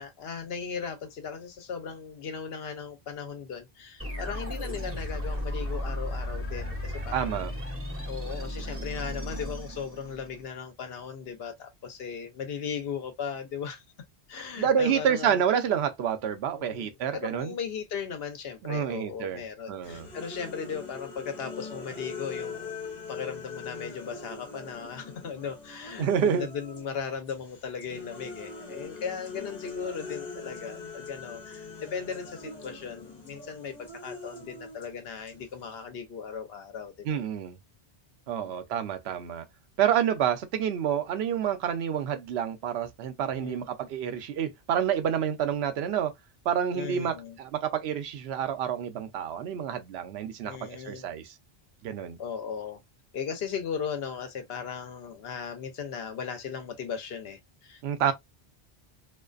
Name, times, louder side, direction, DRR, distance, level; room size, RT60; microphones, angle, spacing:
voice 1, 0.0-7.4 8.1-13.8 14.3-15.4 16.6-22.7 23.1-37.2 38.3-38.6 43.4-43.7 46.7-47.4 50.4-51.1 52.2-52.8 53.1-58.1, left 6 dB, 75° left, 0.9 m, -37 dB
sound 1, 4.0-10.5, left 1 dB, 15° right, 1.2 m, -35 dB
voice 2, 7.1-7.5 14.6-17.6 18.6-19.4 19.7-20.1 26.0-26.5 37.0-37.6 38.3-39.4 39.8-46.1 46.5-51.3 51.8-52.2 57.8-58.1, right 8 dB, 85° right, 0.8 m, -28 dB
sound 2, 19.8-26.9 27.3-35.8, left 4 dB, 45° left, 1.0 m, -42 dB
2.4 x 2.3 x 2.4 m
omnidirectional pair, 1.1 m